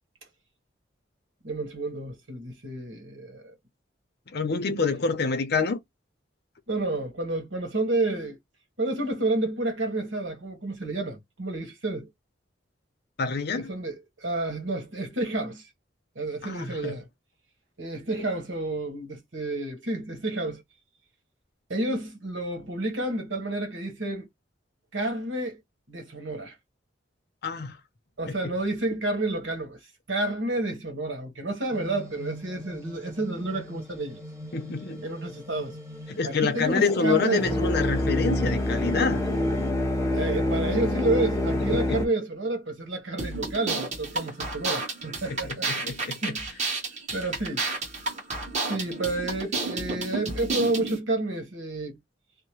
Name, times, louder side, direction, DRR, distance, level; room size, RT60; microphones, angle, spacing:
voice 1, 1.4-3.5 6.7-8.4 8.8-12.1 13.5-15.7 16.1-17.0 17.8-20.6 21.7-24.3 24.9-25.6 25.9-26.5 28.2-29.8 30.1-34.2 35.0-35.8 36.2-37.6 40.1-45.8 46.2-46.5 47.1-47.6 48.7-52.0, right 2 dB, 85° right, 1.3 m, -30 dB
voice 2, 4.3-5.8 13.2-13.7 16.4-17.0 27.4-27.8 28.3-28.5 34.5-35.0 36.1-39.2 41.7-42.0 45.3-46.4, left 4 dB, 60° left, 0.6 m, -27 dB
sound 1, 31.7-39.7, equal, 15° right, 0.9 m, -42 dB
sound 2, 36.7-42.1, left 1 dB, 15° left, 0.6 m, -26 dB
sound 3, 43.2-51.0, right 3 dB, 40° right, 1.3 m, -31 dB
2.8 x 2.1 x 3.0 m
head